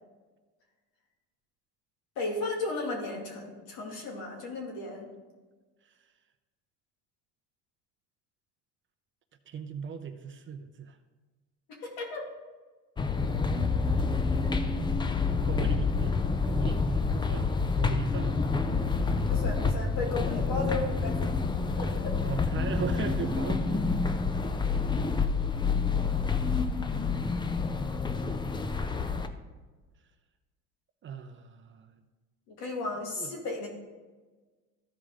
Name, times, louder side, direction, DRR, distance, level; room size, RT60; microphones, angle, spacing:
voice 1, 2.2-5.1 11.8-12.2 19.3-21.3 21.8-21.9 32.5-33.7, left 2 dB, 75° left, -1 dB, 2.6 m, -34 dB
voice 2, 9.5-11.0 15.4-16.1 16.4-18.4 22.3-24.1 31.0-32.0 33.2-33.3, right 7 dB, 30° right, 8 dB, 0.6 m, -38 dB
sound 1, 13.0-29.3, left 4 dB, 15° left, 0.5 m, -28 dB
13.5 x 5.0 x 3.7 m, 1.3 s
supercardioid pair, 110°, 37 cm